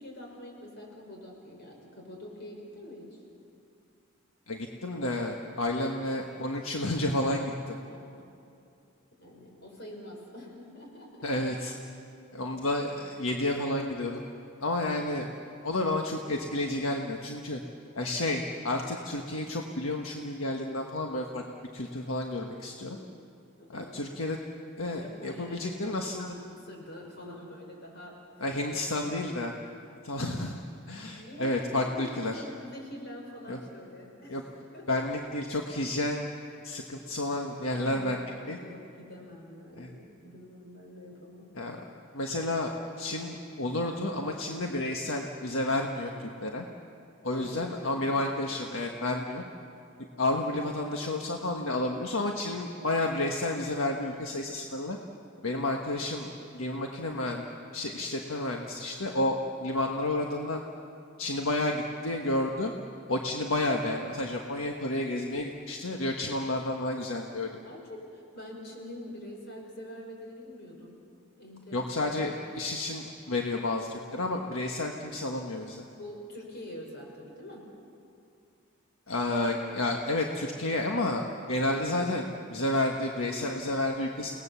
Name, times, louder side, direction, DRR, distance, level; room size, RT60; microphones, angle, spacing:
voice 1, 0.0-3.2 7.9-8.2 9.2-11.3 22.8-23.3 23.6-24.0 24.8-28.8 31.2-34.4 34.7-35.0 37.7-38.3 38.6-41.5 47.3-48.0 67.6-71.0 71.4-72.1 76.0-77.7, left 1 dB, 55° left, 0 dB, 5.5 m, -45 dB
voice 2, 4.5-7.8 11.2-11.7 12.3-14.2 14.6-15.3 15.6-17.6 17.9-21.4 21.7-23.0 23.7-24.4 24.8-26.3 28.4-29.5 30.0-30.6 30.9-32.4 33.5-33.6 34.3-34.4 34.9-36.3 36.6-38.6 39.8-39.9 41.5-41.9 42.1-46.6 47.2-49.4 50.2-55.0 55.4-57.5 57.7-60.6 61.2-62.7 63.1-67.6 71.7-75.8 79.1-84.3, left 2 dB, 80° left, 1 dB, 1.4 m, -31 dB
30.0 x 19.0 x 7.0 m, 2.5 s
head